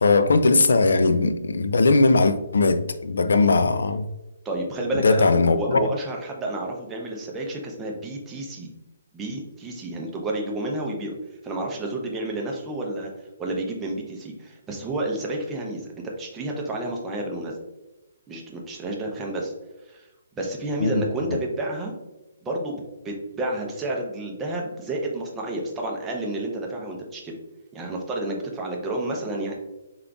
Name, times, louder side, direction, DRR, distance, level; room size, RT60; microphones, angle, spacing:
voice 1, 0.0-4.1 5.0-5.9 20.8-21.0, left 3 dB, 80° left, 0.4 m, -19 dB
voice 2, 4.4-8.7 9.1-11.1 11.4-13.1 13.4-15.9 16.2-17.5 18.3-19.5 19.9-20.1 20.4-21.9 22.4-27.3 27.7-29.5, right 1 dB, 10° right, 0.5 m, -30 dB
3.7 x 3.7 x 2.3 m
hypercardioid pair, 175°, 0 cm